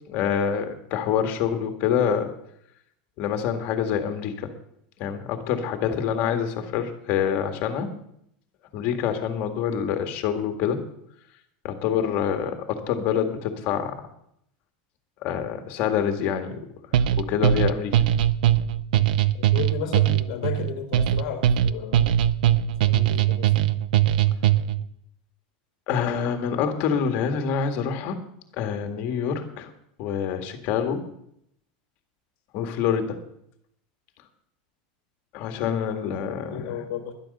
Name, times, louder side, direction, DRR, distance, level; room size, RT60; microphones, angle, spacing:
voice 1, 0.1-2.3 3.2-4.5 5.0-7.9 8.7-10.8 11.6-14.0 15.2-16.6 17.2-17.9 25.9-28.2 28.5-29.7 30.0-31.1 32.5-33.2 35.3-36.8, left 8 dB, 35° left, 6 dB, 1.7 m, -26 dB
sound 1, 16.9-24.9, right 11 dB, 80° right, 0.6 m, -21 dB
voice 2, 19.3-22.1 22.8-23.8 35.6-37.1, left 8 dB, 55° left, 6 dB, 1.6 m, -34 dB
12.5 x 11.5 x 6.6 m, 0.73 s
supercardioid pair, 180°, 5 cm